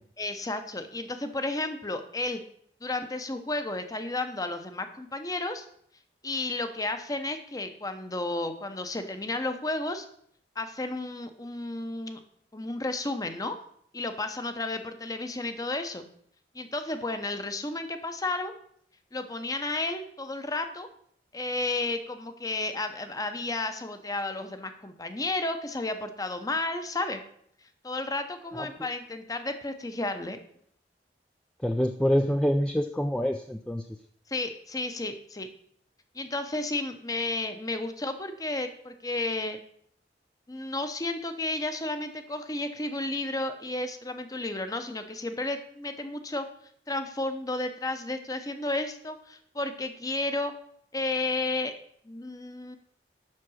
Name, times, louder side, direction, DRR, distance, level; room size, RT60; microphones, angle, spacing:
voice 1, 0.2-2.4 2.8-5.6 6.2-10.1 10.6-12.2 12.5-13.6 13.9-16.0 16.5-18.5 19.1-20.9 21.3-27.2 27.8-30.4 34.3-35.5 36.1-39.6 40.5-46.5 46.9-50.5 50.9-51.7 52.0-52.8, left 2 dB, 20° left, 8 dB, 0.8 m, -32 dB
voice 2, 31.6-33.9, equal, 5° left, 5 dB, 0.4 m, -26 dB
7.5 x 6.0 x 6.3 m, 0.65 s
head